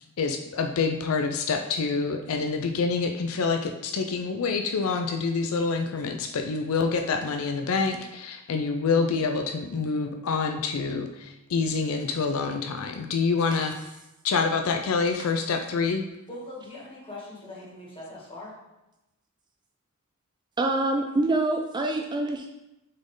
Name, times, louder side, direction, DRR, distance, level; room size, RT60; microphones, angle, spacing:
voice 1, 0.2-13.9 14.2-16.0, left 4 dB, 65° left, 5 dB, 0.4 m, -27 dB
voice 2, 16.3-18.6, left 2 dB, 25° left, -5 dB, 1.9 m, -41 dB
voice 3, 20.6-22.5, right 2 dB, 20° right, 3 dB, 0.3 m, -25 dB
6.3 x 4.2 x 3.8 m, 0.95 s
head